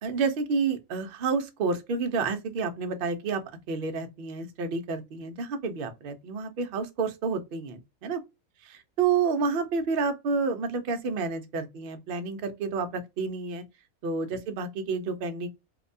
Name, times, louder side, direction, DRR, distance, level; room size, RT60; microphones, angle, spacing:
voice 1, 0.0-3.4 3.7-8.2 8.6-13.6 14.0-15.5, right 4 dB, 60° right, 0.6 m, -29 dB
2.7 x 2.2 x 2.5 m
omnidirectional pair, 1.5 m